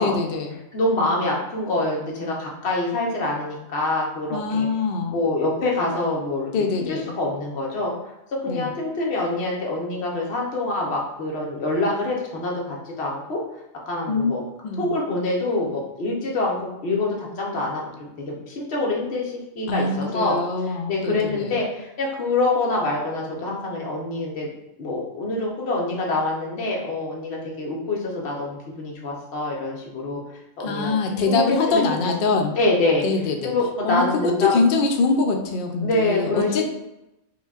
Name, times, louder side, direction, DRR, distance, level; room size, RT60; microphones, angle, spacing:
voice 1, 0.0-0.6 4.3-5.2 6.5-7.1 8.5-8.7 14.1-14.4 14.6-14.9 19.7-21.5 30.6-32.5 33.0-33.5 33.8-36.7, left 4 dB, 90° left, 3 dB, 0.4 m, -23 dB
voice 2, 0.7-4.7 5.1-7.9 8.4-13.4 13.9-14.4 14.8-20.4 20.7-24.5 24.8-30.2 30.6-31.8 32.6-33.0 33.4-34.5 35.8-36.7, left 2 dB, 55° left, -2 dB, 1.0 m, -25 dB
4.9 x 2.3 x 2.3 m, 0.91 s
omnidirectional pair, 1.4 m